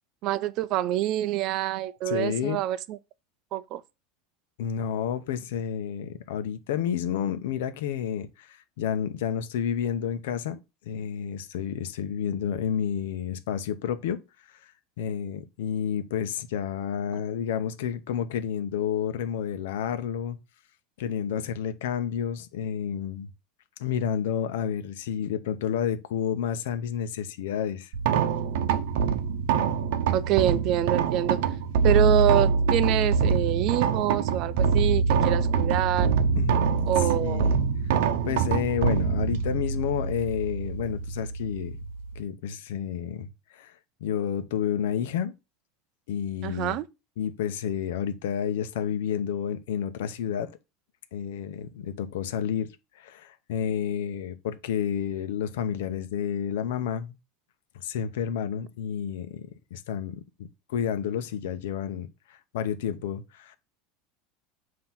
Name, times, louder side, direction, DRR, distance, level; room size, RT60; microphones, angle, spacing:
voice 1, 0.2-3.0 3.5-3.8 30.1-31.4 31.8-36.1 36.9-37.5 46.4-46.9, right 13 dB, 40° right, 0.4 m, -26 dB
voice 2, 2.1-2.6 4.6-10.6 10.8-14.2 14.5-14.7 15.0-20.4 21.0-23.3 23.8-27.9 36.4-36.6 37.0-37.6 38.2-41.8 42.1-45.3 46.1-46.8 47.2-50.5 51.1-57.2 57.7-63.6, left 8 dB, 90° left, 0.8 m, -30 dB
sound 1, 27.9-42.2, right 5 dB, 70° right, 0.7 m, -25 dB
7.6 x 2.9 x 5.8 m
supercardioid pair, 175°, 0 cm